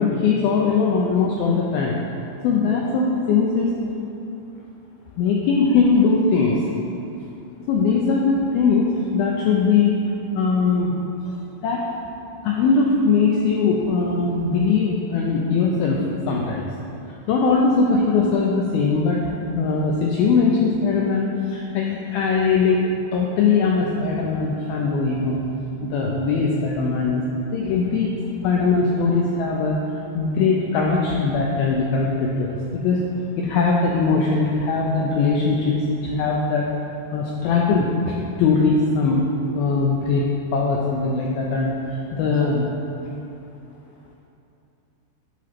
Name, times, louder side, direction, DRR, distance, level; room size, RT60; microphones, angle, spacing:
voice 1, 0.0-2.0 2.4-3.7 5.2-6.7 7.7-10.0 10.3-10.9 11.2-11.4 11.6-11.8 12.4-16.7 17.3-22.8 23.1-25.4 25.8-27.2 27.5-28.1 28.4-29.8 30.1-32.6 32.8-33.0 33.4-36.7 37.1-39.3 39.5-40.3 40.5-42.7, left 4 dB, 85° left, -1 dB, 2.1 m, -20 dB
8.5 x 3.0 x 5.8 m, 2.8 s
omnidirectional pair, 4.8 m